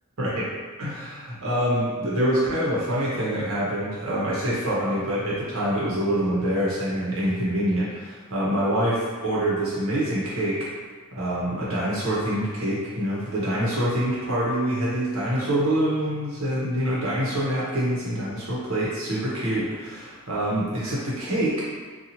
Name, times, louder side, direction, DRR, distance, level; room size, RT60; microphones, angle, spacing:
voice 1, 0.2-0.5 0.8-10.7 11.1-21.7, right 1 dB, 80° right, -7 dB, 0.9 m, -25 dB
2.8 x 2.3 x 2.7 m, 1.4 s
head